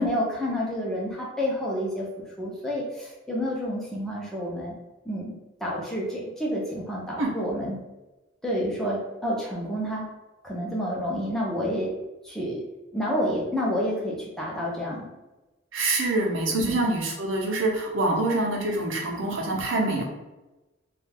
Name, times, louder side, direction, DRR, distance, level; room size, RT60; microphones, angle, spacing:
voice 1, 0.0-2.1 2.4-4.7 5.0-5.3 5.6-7.8 8.4-10.1 10.4-11.9 12.2-12.6 12.9-15.1 16.5-16.8, equal, ahead, -5 dB, 0.6 m, -29 dB
voice 2, 15.7-20.0, right 2 dB, 75° right, -1 dB, 0.7 m, -25 dB
2.4 x 2.3 x 3.4 m, 1.1 s
head